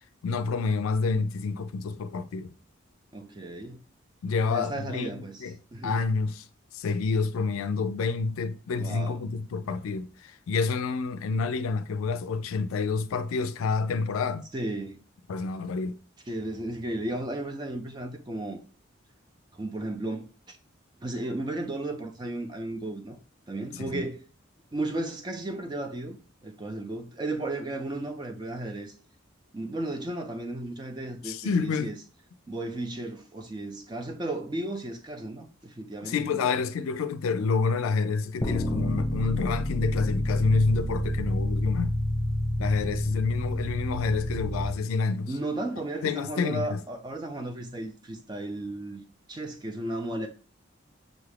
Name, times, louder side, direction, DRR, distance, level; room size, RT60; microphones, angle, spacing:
voice 1, 0.2-2.5 4.2-5.1 5.4-5.5 5.8-6.5 6.7-14.5 15.3-16.0 23.7-24.0 31.2-31.9 36.0-42.0 42.6-45.3 46.0-46.8, left 4 dB, 85° left, 0.3 m, -28 dB
voice 2, 3.1-3.8 4.5-6.1 8.8-9.2 14.5-15.0 16.3-18.6 19.5-20.6 21.0-23.2 23.5-24.2 24.7-28.9 29.5-32.0 32.5-36.5 45.3-49.0 49.3-50.3, right 2 dB, 20° right, 0.4 m, -34 dB
sound 1, 38.4-44.7, left 1 dB, 25° left, 0.7 m, -28 dB
6.2 x 2.4 x 3.3 m
head